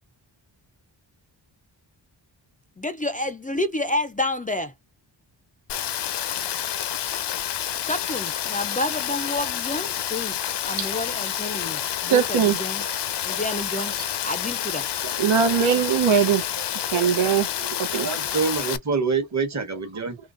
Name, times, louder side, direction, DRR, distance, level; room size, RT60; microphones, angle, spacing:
voice 1, 2.8-4.7 7.9-12.8 13.2-14.0 14.2-14.9, left 2 dB, 20° left, 0.4 m, -29 dB
Rain, 5.7-18.8, left 10 dB, 65° left, 0.6 m, -29 dB
voice 2, 11.5-13.0 13.8-13.9 15.2-18.3, right 8 dB, 90° right, 0.8 m, -23 dB
voice 3, 17.9-20.2, right 5 dB, 35° right, 1.1 m, -26 dB
3.8 x 3.1 x 2.5 m
wide cardioid pair, 95°, 45 cm